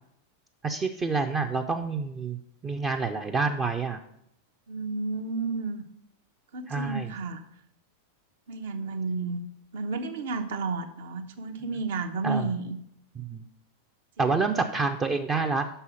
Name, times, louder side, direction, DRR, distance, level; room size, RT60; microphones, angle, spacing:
voice 1, 0.6-4.0 6.7-7.1 12.2-12.5 13.2-13.5 14.2-15.7, right 4 dB, 20° right, 5 dB, 0.5 m, -28 dB
voice 2, 4.7-5.8 6.5-7.4 8.5-9.4 9.7-12.8 14.2-14.4, right 3 dB, 55° right, 8 dB, 0.8 m, -32 dB
6.1 x 5.5 x 7.0 m, 0.74 s
figure-of-eight pair, 90°, 0 cm